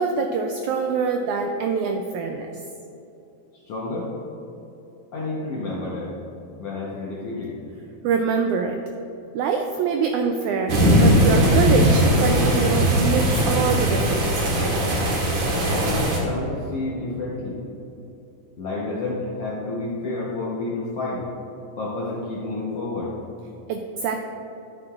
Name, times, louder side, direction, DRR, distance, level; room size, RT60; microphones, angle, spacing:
voice 1, 0.0-2.5 8.0-8.8 9.3-14.4 23.7-24.2, right 5 dB, 85° right, 4 dB, 1.7 m, -24 dB
voice 2, 3.7-4.1 5.1-6.1 6.6-7.6 15.7-17.6 18.6-21.2 21.8-23.1, left 2 dB, 65° left, -5 dB, 1.5 m, -29 dB
sound 1, 10.7-16.2, equal, 60° right, 2.6 m, -19 dB
11.5 x 8.7 x 2.4 m, 2.9 s
omnidirectional pair, 3.9 m